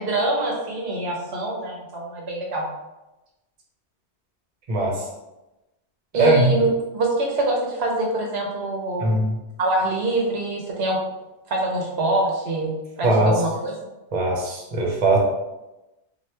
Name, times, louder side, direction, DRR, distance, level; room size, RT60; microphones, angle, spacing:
voice 1, 0.0-2.7 6.1-9.1 9.6-11.0 11.5-13.8, right 2 dB, 70° right, -1 dB, 0.8 m, -25 dB
voice 2, 4.7-5.1 6.1-6.7 9.0-9.4 13.0-13.3 14.1-15.2, right 2 dB, 40° right, -1 dB, 0.6 m, -20 dB
2.8 x 2.2 x 3.1 m, 1.0 s
omnidirectional pair, 1.2 m